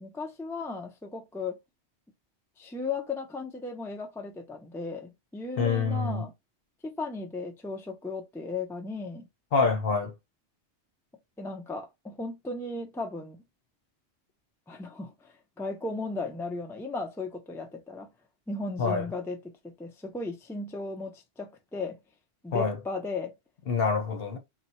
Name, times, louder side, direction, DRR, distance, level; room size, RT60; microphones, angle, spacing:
voice 1, 0.0-1.6 2.6-6.3 6.8-9.3 11.4-13.4 14.7-18.1 18.5-19.4 19.6-22.0 22.4-23.3, left 3 dB, 5° left, 0.5 m, -36 dB
voice 2, 5.6-6.3 9.5-10.1 18.8-19.1 22.5-22.8 23.7-24.4, left 5 dB, 60° left, 1.0 m, -26 dB
4.1 x 2.2 x 4.1 m
omnidirectional pair, 1.2 m